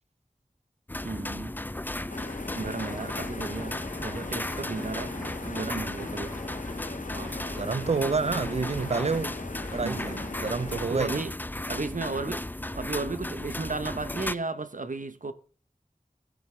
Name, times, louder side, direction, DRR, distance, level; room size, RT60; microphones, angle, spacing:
sound 1, 0.9-14.3, left 1 dB, 15° left, 0.5 m, -35 dB
voice 1, 1.0-1.6 2.5-6.3 9.8-10.3 10.9-11.3 11.7-12.5 12.7-15.3, right 3 dB, 70° right, 1.0 m, -34 dB
sound 2, 2.1-10.9, left 3 dB, 70° left, 0.8 m, -40 dB
voice 2, 7.1-9.3 9.7-11.3, right 4 dB, 50° right, 0.5 m, -29 dB
20.0 x 7.1 x 3.4 m
wide cardioid pair, 40°, 14 cm